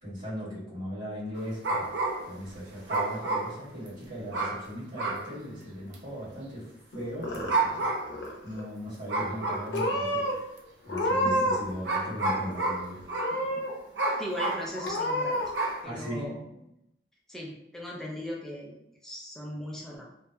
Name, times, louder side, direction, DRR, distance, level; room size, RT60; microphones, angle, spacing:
voice 1, 0.0-2.0 2.3-7.9 8.4-10.5 10.8-13.1 15.8-16.3, equal, 50° right, -11 dB, 1.5 m, -38 dB
sound 1, 1.4-2.4 2.9-3.9 4.3-4.7 5.0-5.3 5.9-6.0 7.3-8.2 9.1-9.8 10.6-10.7 11.8-13.4 14.0-14.7 15.5-15.8, right 2 dB, 80° right, 0.5 m, -30 dB
Purr / Meow, 6.9-7.8 8.1-8.6 9.3-9.5 9.7-10.3 10.8-11.7 12.0-12.7 13.1-13.7 14.2-14.3 14.7-15.5, equal, 85° left, 0.6 m, -29 dB
voice 2, 14.2-15.4 15.8-16.4 17.3-20.0, equal, 5° left, -2 dB, 0.4 m, -38 dB
2.7 x 2.1 x 2.2 m, 0.82 s
head